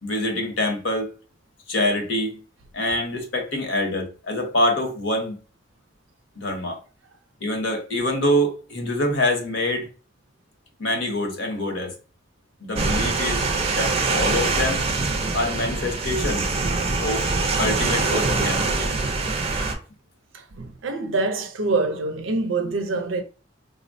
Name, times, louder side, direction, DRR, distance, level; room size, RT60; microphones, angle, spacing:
voice 1, 0.0-1.1 1.7-2.4 2.7-5.4 6.4-6.8 7.4-9.9 10.8-11.9 12.6-13.4 13.8-14.8 15.3-16.5 17.0-17.2 17.6-18.9 19.3-19.4, left 1 dB, 70° left, 0.8 m, -25 dB
sound 1, 12.8-19.7, right 3 dB, 30° right, 0.4 m, -24 dB
voice 2, 20.3-23.2, right 3 dB, 85° right, 0.5 m, -25 dB
3.5 x 2.0 x 2.5 m
head